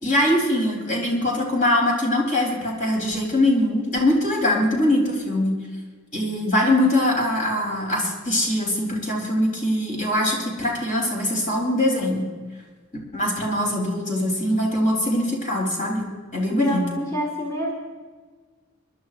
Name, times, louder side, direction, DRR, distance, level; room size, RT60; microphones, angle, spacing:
voice 1, 0.0-5.5 6.1-12.3 13.1-16.9, left 1 dB, 40° left, -1 dB, 3.6 m, -22 dB
voice 2, 16.5-17.7, equal, 15° left, -2 dB, 1.8 m, -27 dB
27.0 x 11.5 x 2.5 m, 1.4 s
head